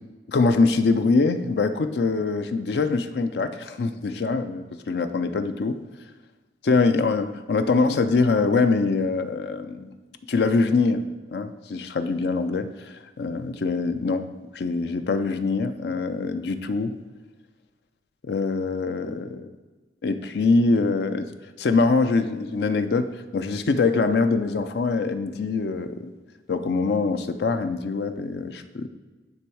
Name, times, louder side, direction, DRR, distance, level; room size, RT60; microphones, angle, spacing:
voice 1, 0.3-5.8 6.6-9.9 10.3-11.0 11.3-14.3 14.5-16.9 18.2-19.5 20.0-21.3 21.6-26.1 26.5-28.9, left 3 dB, 65° left, 9 dB, 0.4 m, -23 dB
9.8 x 3.5 x 4.6 m, 1.2 s
head